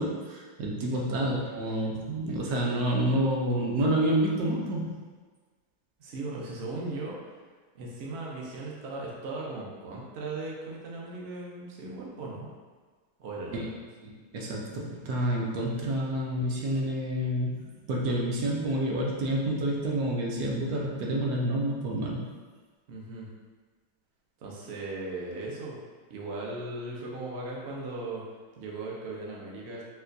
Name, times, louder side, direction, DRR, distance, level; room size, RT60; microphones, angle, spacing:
voice 1, 0.0-5.0 13.5-13.6 14.3-22.2, right 1 dB, 70° right, -2 dB, 1.0 m, -28 dB
voice 2, 0.9-1.2 6.0-7.3 7.7-12.5 13.2-13.8 22.9-23.3 24.4-25.8 26.1-28.2 28.6-29.8, right 2 dB, 90° right, -3 dB, 0.5 m, -38 dB
4.3 x 2.2 x 2.6 m, 1.4 s
omnidirectional pair, 1.9 m